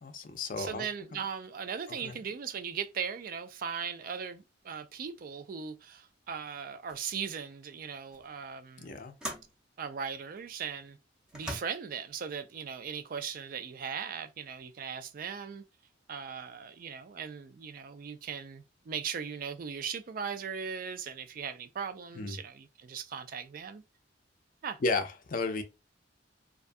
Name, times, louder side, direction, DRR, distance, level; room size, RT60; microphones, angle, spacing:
voice 1, 0.0-0.8 1.1-1.2 2.0-2.2 8.8-9.2 22.2-22.4 24.8-25.6, left 3 dB, 45° left, 0.4 m, -33 dB
voice 2, 0.6-8.9 9.8-11.0 11.3-15.6 16.1-23.8 24.6-24.8, right 6 dB, 50° right, 0.3 m, -38 dB
sound 1, 6.3-6.4 6.9-7.1 8.1-8.3 9.2-9.6 10.4-10.5 11.3-11.6, equal, 5° right, 0.6 m, -40 dB
2.4 x 2.2 x 2.5 m
head